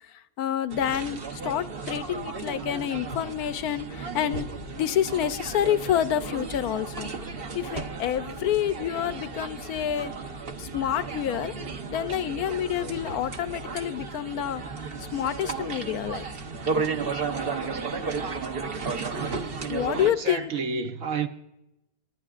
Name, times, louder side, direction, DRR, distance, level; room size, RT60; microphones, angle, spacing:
voice 1, 0.0-4.5 4.7-7.1 7.5-10.1 10.6-11.5 11.9-14.6 15.0-16.2 19.7-20.5, left 10 dB, 70° left, 1.0 m, -28 dB
sound 1, 0.7-20.1, right 4 dB, 40° right, 1.0 m, -34 dB
voice 2, 20.0-21.3, right 5 dB, 60° right, 1.2 m, -30 dB
28.5 x 11.0 x 2.4 m
omnidirectional pair, 1.8 m